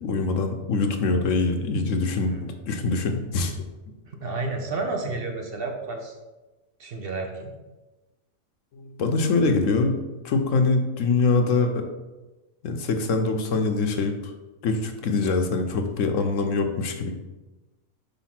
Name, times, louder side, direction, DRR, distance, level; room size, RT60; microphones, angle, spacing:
voice 1, 0.0-3.6 8.7-11.9 12.6-14.3 14.6-17.1, left 3 dB, 65° left, 5 dB, 0.9 m, -24 dB
voice 2, 4.1-6.2 6.8-7.5 15.2-15.3, right 3 dB, 50° right, 3 dB, 0.8 m, -31 dB
4.9 x 4.0 x 5.8 m, 1.1 s
omnidirectional pair, 1.6 m